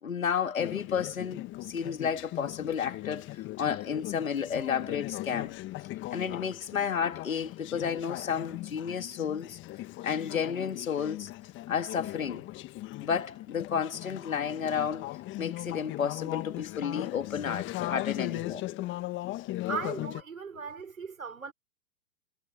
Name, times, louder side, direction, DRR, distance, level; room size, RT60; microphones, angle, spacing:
voice 1, 0.0-5.5 6.1-9.6 10.0-11.3 11.7-12.4 13.0-15.1 15.4-18.9, left 7 dB, 80° left, 2.6 m, -32 dB
Conversation / Chatter, 0.6-20.2, left 17 dB, 30° left, 1.4 m, -38 dB
voice 2, 19.7-21.5, right 6 dB, 90° right, 4.7 m, -37 dB
hypercardioid pair, 110°, 40 cm